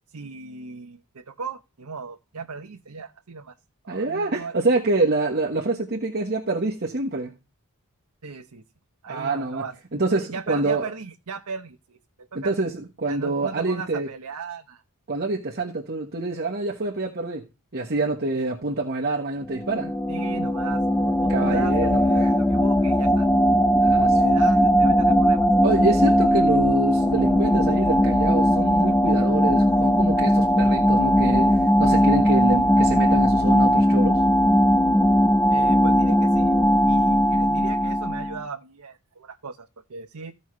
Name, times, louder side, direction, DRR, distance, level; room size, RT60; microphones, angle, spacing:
voice 1, 0.1-3.6 3.8-4.6 8.2-8.6 9.0-9.7 10.1-12.7 13.0-14.8 18.3-18.4 20.1-23.3 24.0-25.5 35.5-36.6 36.8-40.3, right 5 dB, 90° right, 0.8 m, -37 dB
voice 2, 3.9-7.3 9.1-9.6 9.9-10.9 12.3-14.1 15.1-17.4 17.7-19.9 21.3-22.3 23.8-24.3 25.6-34.2, right 2 dB, 45° right, 1.3 m, -26 dB
sound 1, 19.5-38.4, equal, 10° left, 0.5 m, -19 dB
15.5 x 5.4 x 3.1 m
head